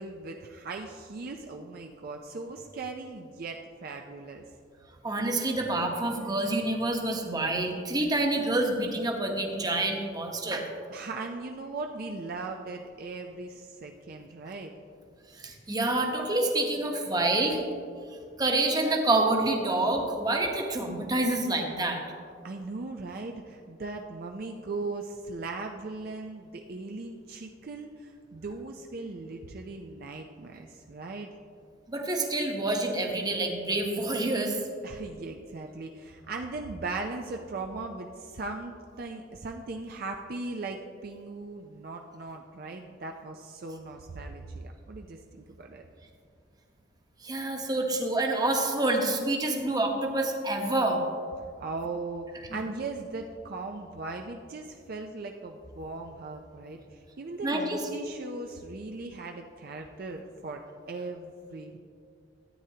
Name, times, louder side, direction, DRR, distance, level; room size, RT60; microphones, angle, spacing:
voice 1, 0.0-4.4 10.9-14.7 22.4-31.3 34.8-45.8 47.6-47.8 51.6-60.6 60.9-61.8, right 3 dB, 55° right, 3 dB, 0.5 m, -38 dB
voice 2, 5.0-10.7 15.4-17.6 18.4-22.0 31.9-34.6 47.2-51.0 52.5-52.6 57.4-57.8, right 2 dB, 20° right, 2 dB, 1.0 m, -27 dB
13.0 x 9.0 x 2.8 m, 2.2 s
head